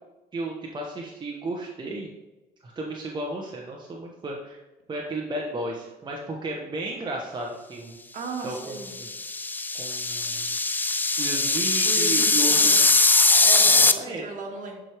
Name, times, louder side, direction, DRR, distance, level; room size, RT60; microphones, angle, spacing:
voice 1, 0.3-2.1 2.6-4.6 4.9-8.0 8.4-9.1 9.7-10.6 11.2-12.8 13.7-14.2, right 2 dB, 25° right, -1 dB, 0.9 m, -33 dB
voice 2, 8.1-8.9 11.8-12.8 13.4-14.8, right 4 dB, 50° right, 0 dB, 1.8 m, -36 dB
sound 1, 8.8-13.9, left 3 dB, 10° left, 0.3 m, -21 dB
10.0 x 4.5 x 3.3 m, 1.1 s
cardioid pair, 110°, 17 cm